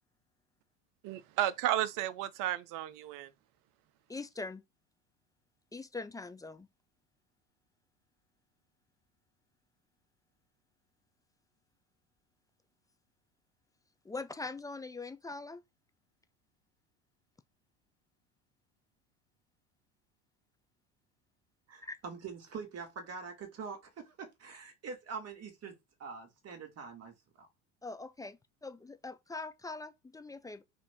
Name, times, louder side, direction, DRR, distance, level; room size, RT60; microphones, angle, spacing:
voice 1, 1.0-3.3, right 13 dB, 55° right, 0.7 m, -33 dB
voice 2, 4.1-4.6 5.7-6.7 14.0-15.6 21.8-22.0 27.8-30.6, left 3 dB, 10° left, 0.3 m, -42 dB
voice 3, 21.7-23.8 24.1-25.7 26.0-27.5, right 5 dB, 40° right, 2.0 m, -44 dB
4.9 x 2.6 x 3.6 m
hypercardioid pair, 80°, 39 cm